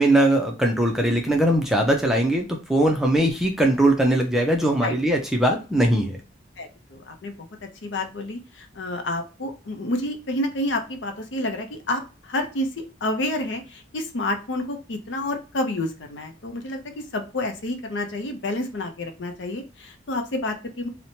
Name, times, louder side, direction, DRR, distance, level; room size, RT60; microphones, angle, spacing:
voice 1, 0.0-6.2, right 1 dB, ahead, 1 dB, 0.4 m, -20 dB
voice 2, 6.6-7.5 7.8-12.0 12.3-20.9, left 1 dB, 70° left, 5 dB, 0.6 m, -29 dB
2.9 x 2.1 x 2.7 m, 0.33 s
head